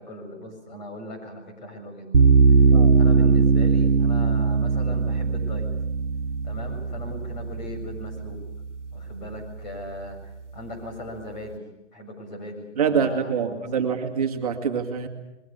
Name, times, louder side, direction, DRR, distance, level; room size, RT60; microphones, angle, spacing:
voice 1, 0.0-2.3 3.0-5.7 6.4-8.4 8.9-10.2 10.5-14.0, left 1 dB, 35° left, 3 dB, 7.0 m, -39 dB
sound 1, 2.1-9.2, right 4 dB, 70° right, 1.4 m, -20 dB
voice 2, 12.8-15.1, right 6 dB, 30° right, 4 dB, 2.1 m, -25 dB
27.5 x 22.0 x 6.8 m, 0.92 s
figure-of-eight pair, 155°, 36 cm